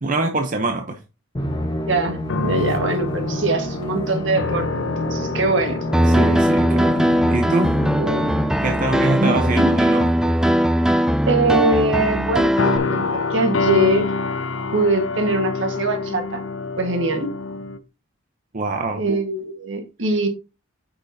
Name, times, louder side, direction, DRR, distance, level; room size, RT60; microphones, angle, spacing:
voice 1, 0.0-1.0 6.0-7.7 8.6-10.1 18.5-19.0, right 2 dB, 40° right, 0.8 m, -24 dB
Musical instrument, 1.3-9.8, left 1 dB, 25° left, 1.2 m, -29 dB
voice 2, 1.9-5.8 8.0-8.3 9.2-9.8 11.3-12.5 12.9-14.1 14.7-16.4 16.8-17.3 18.9-20.3, right 2 dB, 65° right, 1.6 m, -22 dB
sound 1, 2.3-8.4 8.7-9.0 10.0-10.7 12.6-17.8, left 3 dB, 75° left, 0.7 m, -27 dB
Piano, 5.9-12.8, equal, 5° right, 0.3 m, -19 dB
8.3 x 6.3 x 2.8 m
head